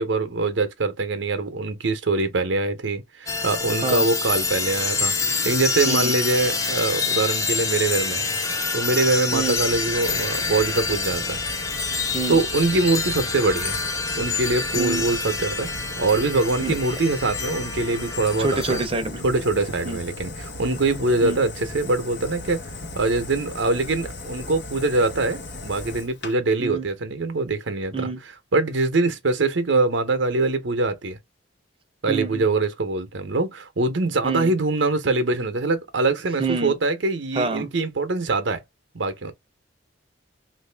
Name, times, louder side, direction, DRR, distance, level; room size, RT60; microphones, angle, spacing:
voice 1, 0.0-8.3 8.7-11.4 12.3-13.8 14.2-18.8 19.2-22.7 22.9-28.1 28.5-31.2 32.0-38.6 38.9-39.3, right 3 dB, 80° right, 0.8 m, -23 dB
sound 1, 3.3-18.9, left 4 dB, 20° left, 0.5 m, -27 dB
Fire, 9.3-26.3, left 2 dB, 65° left, 0.9 m, -37 dB
voice 2, 18.4-19.3 19.8-20.0 21.2-21.4 26.6-26.8 27.9-28.2 32.1-32.4 34.2-34.5 36.4-36.7 37.3-37.7, right 3 dB, 30° right, 0.7 m, -27 dB
3.0 x 2.6 x 3.3 m
head